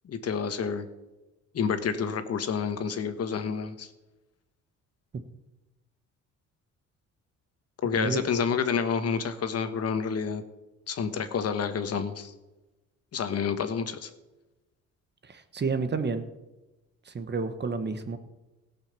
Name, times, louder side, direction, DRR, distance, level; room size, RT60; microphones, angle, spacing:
voice 1, 0.0-0.9 1.5-3.9 7.8-10.4 10.9-12.3 13.1-14.1, left 6 dB, 55° left, 9 dB, 1.3 m, -29 dB
voice 2, 7.8-8.2 15.2-16.3 17.0-18.2, right 4 dB, 35° right, 10 dB, 1.3 m, -30 dB
17.0 x 5.9 x 6.9 m, 1.1 s
cardioid pair, 90°, 30 cm